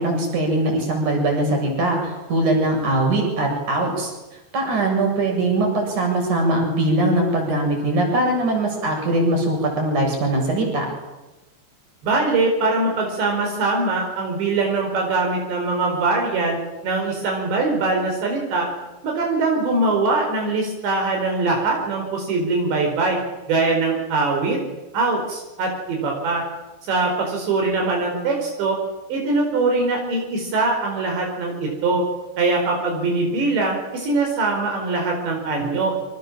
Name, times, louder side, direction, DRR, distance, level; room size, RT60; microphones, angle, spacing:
voice 1, 0.0-4.1 4.5-10.9, right 1 dB, 45° right, 2 dB, 8.9 m, -21 dB
voice 2, 12.0-18.7 19.0-23.2 23.5-24.6 24.9-26.4 26.8-28.8 29.1-32.0 32.4-35.9, right 3 dB, 75° right, 1 dB, 6.9 m, -22 dB
29.0 x 26.0 x 7.5 m, 1.1 s
omnidirectional pair, 5.1 m